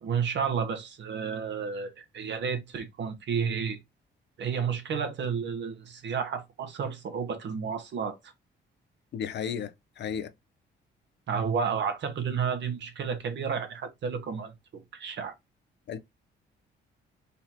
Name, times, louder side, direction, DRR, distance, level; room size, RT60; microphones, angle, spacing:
voice 1, 0.0-3.8 4.4-8.3 11.3-15.3, right 6 dB, 65° right, 1.4 m, -31 dB
voice 2, 9.1-10.3 15.9-16.0, left 7 dB, 60° left, 0.8 m, -34 dB
4.2 x 2.9 x 4.1 m
cardioid pair, 90°, 20 cm